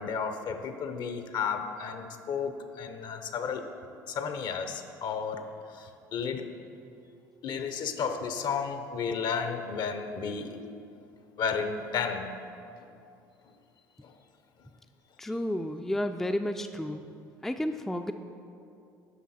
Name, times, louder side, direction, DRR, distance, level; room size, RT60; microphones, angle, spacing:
voice 1, 0.0-3.6 4.1-5.4 5.8-5.9 6.1-6.5 7.4-10.6 11.4-12.3, left 6 dB, 55° left, 8 dB, 0.7 m, -32 dB
voice 2, 15.2-17.0 17.4-18.1, left 1 dB, 5° left, 7 dB, 0.3 m, -31 dB
9.6 x 5.8 x 4.3 m, 2.6 s
hypercardioid pair, 75°, 9 cm